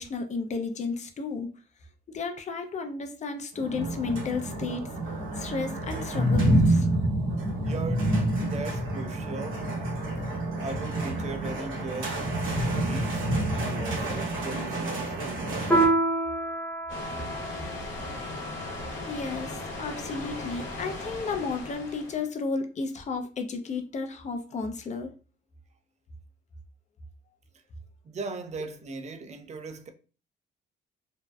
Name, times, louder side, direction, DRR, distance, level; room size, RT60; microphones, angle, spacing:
voice 1, 0.0-1.5 2.1-6.9 19.1-25.1, left 4 dB, 35° left, 0.5 m, -33 dB
sound 1, 3.6-15.9, right 1 dB, 90° right, 0.9 m, -28 dB
voice 2, 7.4-9.7 10.6-12.2 12.7-13.3 13.6-15.6 28.0-29.9, right 3 dB, 35° right, 0.4 m, -38 dB
Piano, 15.7-20.7, right 2 dB, 5° left, 0.7 m, -29 dB
sound 2, 16.9-22.3, left 2 dB, 75° left, 0.8 m, -38 dB
2.6 x 2.1 x 2.3 m
cardioid pair, 90°, 20 cm